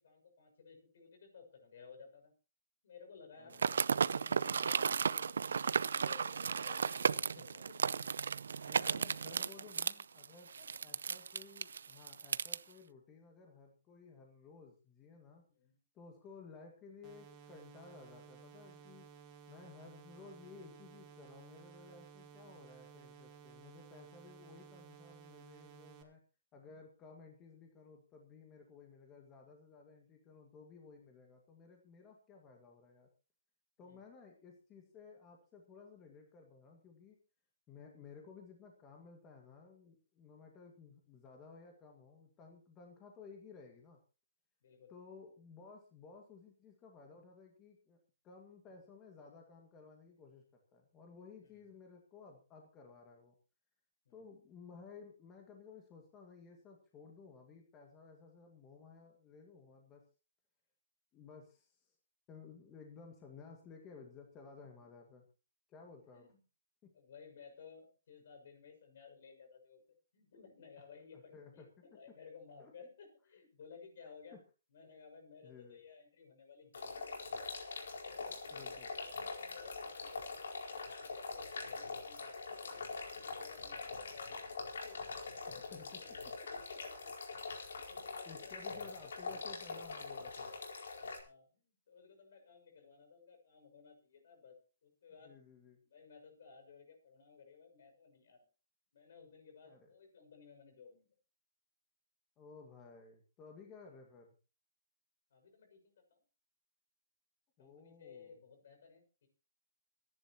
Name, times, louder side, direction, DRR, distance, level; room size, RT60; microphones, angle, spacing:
voice 1, 0.0-2.3 2.8-8.1 8.8-9.5 10.6-10.7 15.5-15.8 33.8-34.0 44.6-44.9 51.4-51.7 54.0-54.3 66.0-66.4 66.9-69.8 70.1-74.4 74.7-77.5 77.8-84.4 84.8-87.1 87.4-89.6 91.1-95.4 95.8-98.5 98.9-101.1 105.3-106.2 107.6-109.3, left 5 dB, 55° left, 5 dB, 6.4 m, -58 dB
voice 2, 3.4-3.8 8.6-10.5 10.8-15.5 15.9-19.1 19.5-26.2 26.5-33.1 33.8-37.2 37.7-44.0 44.9-48.0 48.2-50.4 50.7-53.4 54.1-60.0 61.1-62.0 62.3-65.2 65.7-66.3 66.8-66.9 71.1-71.7 72.6-72.7 74.0-74.1 75.4-75.8 78.5-78.9 85.5-86.0 88.2-90.6 95.2-95.8 99.7-99.9 102.4-104.3 107.6-108.4, left 5 dB, 15° left, 2 dB, 2.0 m, -56 dB
sound 1, 3.5-12.6, right 6 dB, 80° right, 0.6 m, -34 dB
sound 2, 17.0-26.0, right 7 dB, 20° right, 2.3 m, -57 dB
sound 3, 76.7-91.2, left 4 dB, 75° left, 4.6 m, -44 dB
26.0 x 11.0 x 3.0 m, 0.34 s
hypercardioid pair, 165°, 0 cm